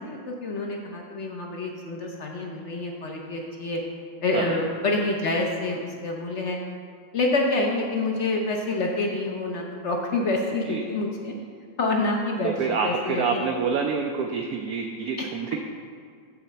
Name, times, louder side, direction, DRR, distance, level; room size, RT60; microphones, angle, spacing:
voice 1, 0.0-3.8 4.2-6.6 7.1-11.3 11.8-12.5 12.8-13.4 15.2-15.3, left 2 dB, 55° left, 0 dB, 0.8 m, -27 dB
voice 2, 12.4-15.6, right 5 dB, 70° right, 3 dB, 0.9 m, -27 dB
7.2 x 4.2 x 6.7 m, 2.1 s
omnidirectional pair, 2.0 m